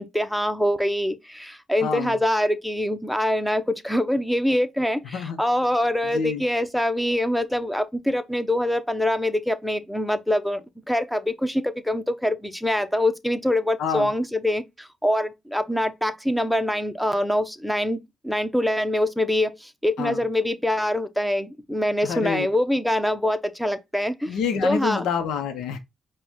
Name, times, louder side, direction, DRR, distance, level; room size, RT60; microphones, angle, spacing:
voice 1, 0.0-10.6 10.9-25.1, left 1 dB, ahead, 0.8 m, -24 dB
voice 2, 1.8-2.1 5.1-5.4 6.1-6.4 13.8-14.1 20.0-20.2 22.0-22.5 24.3-25.8, left 6 dB, 80° left, 0.8 m, -27 dB
5.0 x 2.4 x 3.5 m
cardioid pair, 90°, 0 cm